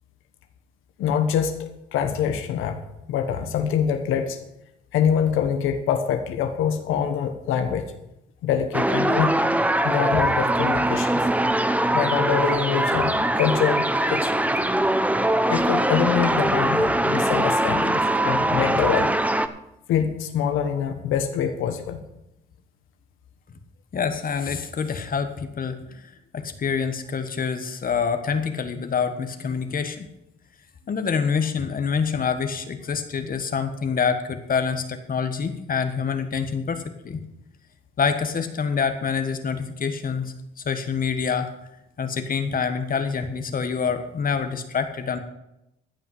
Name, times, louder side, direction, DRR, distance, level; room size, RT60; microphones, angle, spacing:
voice 1, 1.0-2.8 3.1-4.4 4.9-7.9 8.4-9.4 9.8-11.3 11.9-14.3 15.5-19.1 19.9-22.0, left 8 dB, 90° left, 7 dB, 1.2 m, -25 dB
sound 1, 8.7-19.5, right 1 dB, 5° right, 0.7 m, -22 dB
voice 2, 23.9-26.1 26.3-30.1 30.9-37.2 38.0-40.3 40.6-41.5 42.0-45.2, left 6 dB, 45° left, 8 dB, 1.4 m, -26 dB
14.5 x 5.6 x 7.7 m, 0.85 s
cardioid pair, 90°, 20 cm